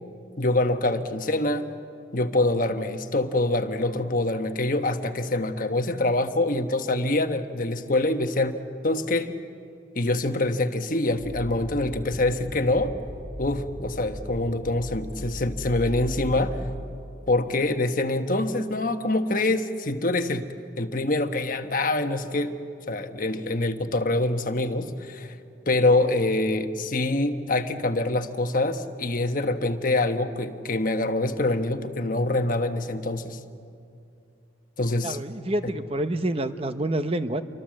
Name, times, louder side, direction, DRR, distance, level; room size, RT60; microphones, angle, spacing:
voice 1, 0.4-1.7 2.1-8.6 8.8-9.3 9.9-12.9 13.4-16.6 17.3-20.5 20.8-22.5 22.9-25.4 25.7-33.4 34.8-35.2 35.6-35.7, left 2 dB, 45° left, 7 dB, 1.2 m, -25 dB
sound 1, 11.1-16.9, left 1 dB, 15° left, 3.3 m, -37 dB
voice 2, 35.0-37.4, right 1 dB, 30° right, 10 dB, 0.9 m, -28 dB
28.0 x 23.5 x 7.6 m, 2.5 s
head